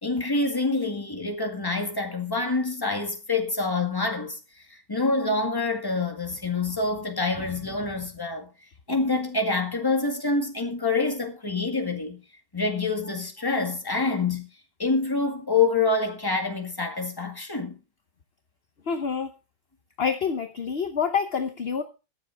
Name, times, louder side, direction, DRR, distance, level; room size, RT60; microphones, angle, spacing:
voice 1, 0.0-4.4 4.9-8.5 8.9-12.2 12.5-14.5 14.8-17.8, left 3 dB, 15° left, 1.8 m, -26 dB
voice 2, 18.9-19.3 20.0-21.8, left 6 dB, 45° left, 1.0 m, -27 dB
22.5 x 7.5 x 3.5 m
omnidirectional pair, 1.9 m